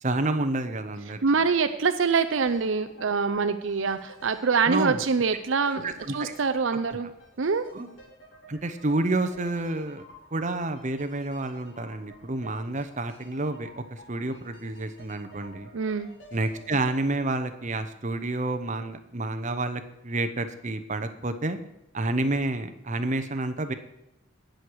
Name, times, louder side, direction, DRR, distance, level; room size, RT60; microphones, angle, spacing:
voice 1, 0.0-1.2 4.7-5.0 5.8-6.3 7.7-7.9 8.5-10.1 10.3-15.7 16.3-21.6 21.9-23.7, right 2 dB, 35° right, 8 dB, 0.9 m, -29 dB
voice 2, 1.2-7.1 7.4-7.6 15.7-16.1, right 5 dB, 65° right, 9 dB, 0.6 m, -25 dB
sound 1, 2.3-18.3 18.5-18.6, equal, 60° left, 3.8 m, -52 dB
19.0 x 6.5 x 4.7 m, 0.89 s
head